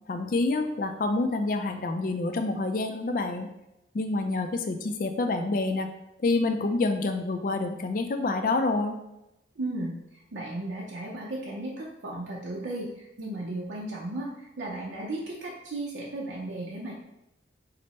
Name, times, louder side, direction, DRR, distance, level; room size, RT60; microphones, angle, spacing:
voice 1, 0.1-3.5 3.9-5.9 6.2-9.0, left 3 dB, 45° left, 5 dB, 0.4 m, -27 dB
voice 2, 9.6-16.9, right 2 dB, 85° right, -4 dB, 0.7 m, -35 dB
5.1 x 2.1 x 4.2 m, 0.89 s
head